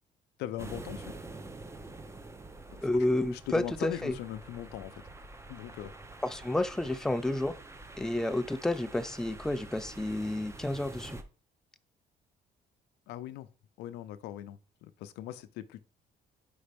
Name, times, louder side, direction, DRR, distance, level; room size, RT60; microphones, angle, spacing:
voice 1, 0.4-1.1 2.7-5.0 5.5-5.9 13.1-13.5 13.8-15.8, left 13 dB, 90° left, 0.6 m, -40 dB
sound 1, 0.6-11.2, right 2 dB, 15° right, 0.9 m, -47 dB
voice 2, 2.8-4.2 6.2-7.5 8.0-11.2, left 1 dB, 5° left, 0.5 m, -30 dB
5.3 x 4.2 x 5.2 m
cardioid pair, 110°, 17 cm